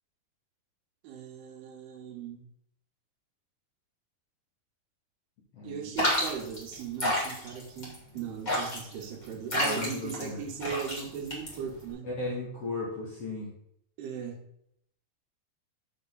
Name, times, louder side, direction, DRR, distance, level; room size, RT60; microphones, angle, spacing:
voice 1, 1.0-2.5 5.6-12.1 14.0-14.4, right 7 dB, 80° right, 3 dB, 2.9 m, -38 dB
voice 2, 5.5-5.9 9.5-10.4 12.0-13.5, left 3 dB, 55° left, -5 dB, 1.7 m, -36 dB
sound 1, 6.0-11.9, left 1 dB, 20° left, 1.1 m, -31 dB
6.7 x 6.4 x 4.0 m, 0.73 s
omnidirectional pair, 4.6 m